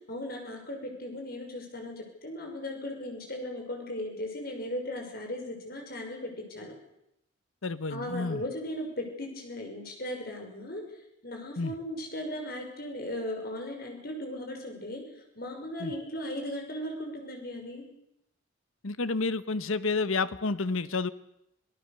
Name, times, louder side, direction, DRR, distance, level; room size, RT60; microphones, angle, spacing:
voice 1, 0.1-6.7 7.9-10.8 11.2-15.0 15.4-17.8, left 1 dB, 50° left, 2 dB, 6.0 m, -37 dB
voice 2, 7.6-8.4 11.6-11.7 15.8-15.9 18.8-21.1, left 3 dB, 85° left, 14 dB, 1.1 m, -30 dB
27.0 x 18.0 x 6.9 m, 0.82 s
head